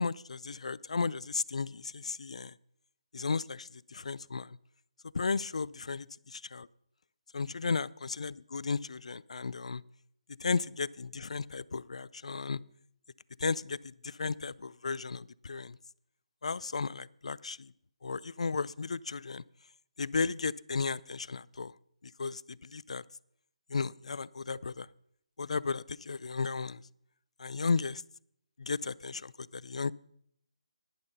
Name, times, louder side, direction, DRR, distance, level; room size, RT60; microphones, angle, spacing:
voice 1, 0.0-2.5 3.1-4.6 5.1-6.7 7.3-9.8 10.4-12.6 13.4-15.8 16.4-17.7 18.0-19.4 20.0-21.7 22.0-23.0 23.7-24.9 25.4-26.8 27.4-28.0 28.6-29.9, left 4 dB, 70° left, 21 dB, 0.4 m, -34 dB
11.0 x 10.5 x 5.4 m, 0.69 s
figure-of-eight pair, 150°, 4 cm